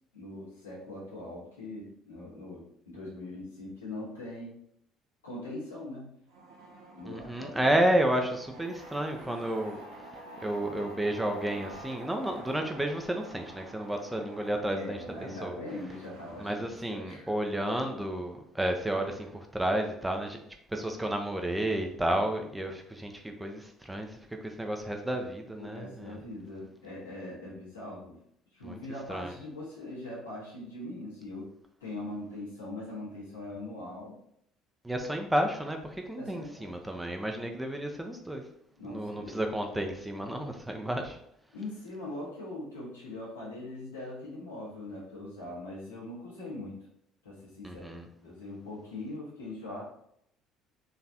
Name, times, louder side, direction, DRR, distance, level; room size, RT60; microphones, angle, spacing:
voice 1, 0.1-4.6 5.2-6.2 6.9-7.7 14.7-17.3 25.6-28.2 28.5-31.5 31.8-34.2 36.2-36.8 38.8-39.4 41.5-46.9 47.2-49.8, left 2 dB, 80° left, -6 dB, 1.4 m, -41 dB
sound 1, 6.3-16.5, right 1 dB, 65° right, 0.9 m, -48 dB
voice 2, 7.1-9.8 10.4-15.0 15.4-15.6 16.4-20.4 20.7-26.2 28.6-28.8 29.1-29.3 34.8-38.4 38.8-41.2 47.6-48.1, right 1 dB, 10° right, 4 dB, 0.6 m, -31 dB
4.0 x 3.3 x 2.8 m, 0.72 s
figure-of-eight pair, 55°, 0 cm